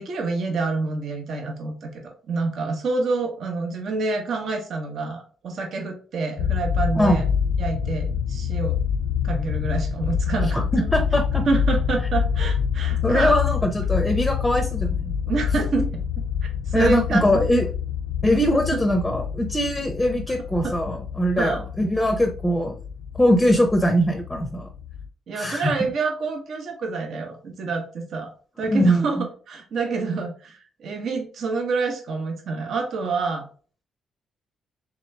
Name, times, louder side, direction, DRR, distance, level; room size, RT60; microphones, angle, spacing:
voice 1, 0.0-7.2 7.6-8.8 9.2-10.9 11.5-13.4 15.3-16.0 16.4-17.2 18.7-18.8 20.6-20.7 21.4-21.7 25.3-28.3 28.6-33.4, right 4 dB, 65° right, 3 dB, 0.8 m, -27 dB
sound 1, 6.4-25.1, left 7 dB, 85° left, 0.3 m, -26 dB
voice 2, 10.5-11.4 13.0-15.1 16.7-17.7 18.2-22.8 23.2-24.7 25.3-25.7 28.7-29.2, equal, 10° left, 4 dB, 0.6 m, -21 dB
3.3 x 2.9 x 3.2 m, 0.40 s
cardioid pair, 90°, 0 cm